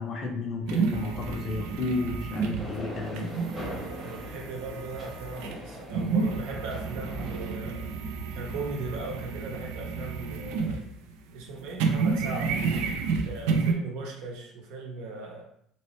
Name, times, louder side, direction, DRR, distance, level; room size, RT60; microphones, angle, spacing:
voice 1, 0.0-3.3, left 3 dB, 30° left, 2 dB, 0.5 m, -32 dB
sound 1, 0.7-11.1 11.4-13.7, right 4 dB, 90° right, 0.4 m, -30 dB
sound 2, 2.6-7.5, left 1 dB, 5° right, 0.9 m, -41 dB
voice 2, 3.6-7.9 8.3-10.8 11.3-12.6 13.3-15.4, right 3 dB, 70° right, 0 dB, 0.9 m, -38 dB
3.1 x 3.0 x 3.0 m, 0.69 s
cardioid pair, 180°, 0 cm